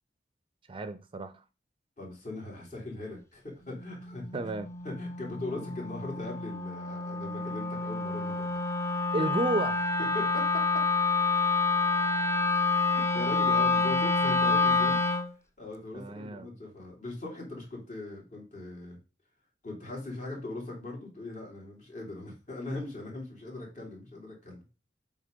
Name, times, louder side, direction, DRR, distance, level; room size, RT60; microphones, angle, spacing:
voice 1, 0.7-1.4 4.3-4.7 9.1-9.9 15.9-16.6, right 2 dB, 30° right, 0.5 m, -32 dB
voice 2, 2.0-4.2 4.8-8.6 10.1-10.5 10.7-10.8 12.9-15.0 15.6-19.0 19.6-24.6, left 2 dB, 45° left, 3.0 m, -40 dB
Wind instrument woodwind instrument, 3.7-15.3, left 4 dB, 15° left, 0.7 m, -28 dB
7.8 x 3.9 x 5.2 m
head